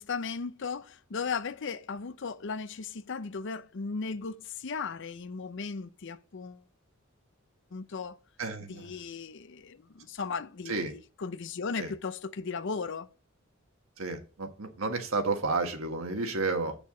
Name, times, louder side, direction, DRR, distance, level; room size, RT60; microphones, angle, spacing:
voice 1, 0.0-6.6 7.7-8.1 8.7-13.1, left 5 dB, 60° left, 0.6 m, -36 dB
voice 2, 8.4-9.0 10.7-10.9 11.8-11.9 14.0-16.7, right 3 dB, 80° right, 1.6 m, -31 dB
8.5 x 6.9 x 3.8 m
head